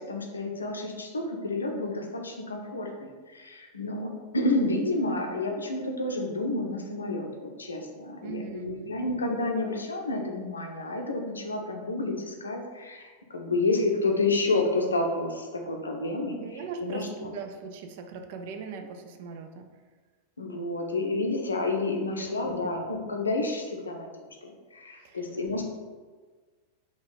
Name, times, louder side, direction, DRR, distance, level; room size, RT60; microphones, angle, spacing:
voice 1, 0.0-17.4 20.4-25.6, left 2 dB, 75° left, 2 dB, 0.5 m, -30 dB
voice 2, 8.2-8.9 16.4-19.7 22.2-22.7 25.0-25.2, right 5 dB, 50° right, 6 dB, 0.4 m, -40 dB
3.7 x 2.4 x 3.9 m, 1.4 s
figure-of-eight pair, 90°, 0 cm